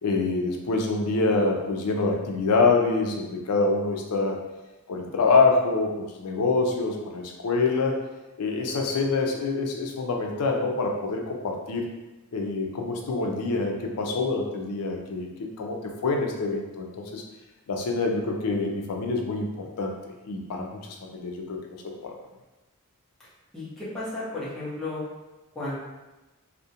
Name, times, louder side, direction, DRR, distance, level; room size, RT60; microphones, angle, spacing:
voice 1, 0.0-4.4 4.9-8.0 8.4-11.8 12.3-15.8 16.0-17.2 17.7-19.9 20.3-20.8 21.1-21.6 21.8-22.1, left 3 dB, 85° left, 2 dB, 0.4 m, -26 dB
voice 2, 23.5-25.0 25.5-25.8, left 2 dB, ahead, -11 dB, 0.8 m, -33 dB
2.4 x 2.1 x 2.7 m, 1.1 s
head